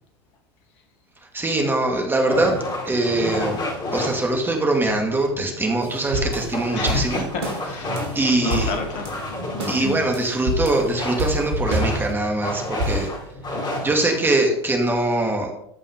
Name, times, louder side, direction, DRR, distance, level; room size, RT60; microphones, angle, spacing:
voice 1, 1.3-2.5 2.9-3.6 3.9-7.3 8.1-8.7 9.7-13.1 13.5-15.5, right 2 dB, 15° right, 2 dB, 2.3 m, -22 dB
sound 1, 2.3-14.3, left 1 dB, 30° left, 3.7 m, -31 dB
sound 2, 5.8-8.2 8.5-9.2 9.6-12.4 12.8-13.1, equal, 70° right, 3.1 m, -27 dB
voice 2, 6.7-8.0 8.4-9.2 9.5-10.0, left 4 dB, 55° left, 4 dB, 2.6 m, -30 dB
14.5 x 5.5 x 5.1 m, 0.75 s
hypercardioid pair, 85°, 14 cm